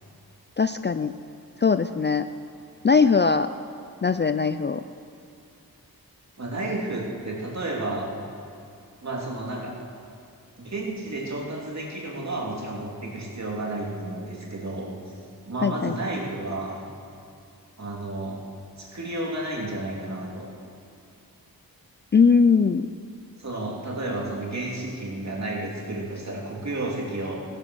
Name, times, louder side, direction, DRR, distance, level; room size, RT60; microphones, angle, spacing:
voice 1, 0.6-1.1 1.6-2.3 2.8-3.5 4.0-4.8 15.6-16.0 22.1-22.9, left 5 dB, 30° left, 11 dB, 0.4 m, -20 dB
voice 2, 6.4-8.1 9.0-9.7 10.6-14.9 15.5-16.8 17.8-18.4 18.8-20.5 23.4-27.4, right 2 dB, 50° right, -2 dB, 2.8 m, -31 dB
16.0 x 11.0 x 6.3 m, 2.5 s
wide cardioid pair, 100°, 36 cm